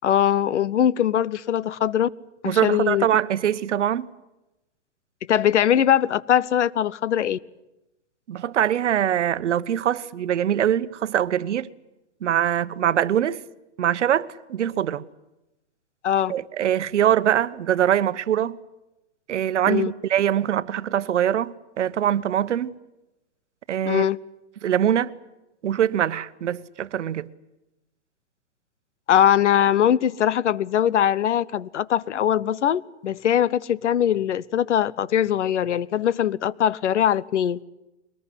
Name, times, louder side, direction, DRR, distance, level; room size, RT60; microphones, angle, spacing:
voice 1, 0.0-2.1 2.4-3.1 5.3-7.4 16.0-16.3 19.7-19.9 23.8-24.2 29.1-37.6, left 10 dB, 90° left, 1.0 m, -21 dB
voice 2, 2.4-4.1 8.3-11.7 12.2-13.4 13.8-15.0 16.3-18.6 19.3-22.7 23.7-24.1 24.6-25.1 25.6-27.3, right 10 dB, 85° right, 1.1 m, -23 dB
22.5 x 20.0 x 10.0 m
hypercardioid pair, 180°, 35 cm